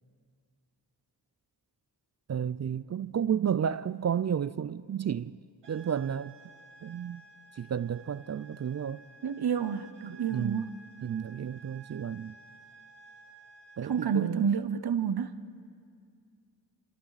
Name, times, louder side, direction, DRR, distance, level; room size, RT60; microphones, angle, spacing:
voice 1, 2.3-5.4 5.7-6.3 6.8-7.2 7.5-9.0 10.0-10.7 11.0-12.4 13.8-14.5, right 8 dB, 45° right, 0.4 m, -32 dB
sound 1, 5.6-14.6, right 3 dB, 85° right, 1.9 m, -54 dB
voice 2, 9.2-10.8 13.8-15.3, right 7 dB, 70° right, 0.9 m, -29 dB
28.5 x 24.5 x 4.1 m
cardioid pair, 60°, 40 cm